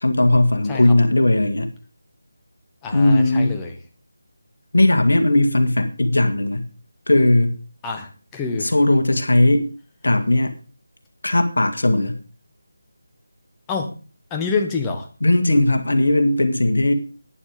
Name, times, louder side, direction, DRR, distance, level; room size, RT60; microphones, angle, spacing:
voice 1, 0.0-1.7 2.9-3.6 4.7-6.7 7.1-7.6 8.6-9.7 10.0-10.5 11.2-12.2 15.2-16.9, left 1 dB, 65° left, 7 dB, 2.0 m, -17 dB
voice 2, 2.8-3.7 7.8-8.7 13.7-13.9 14.3-15.1, left 4 dB, 10° left, 3 dB, 1.5 m, -27 dB
11.5 x 9.9 x 5.1 m, 0.36 s
figure-of-eight pair, 160°, 0 cm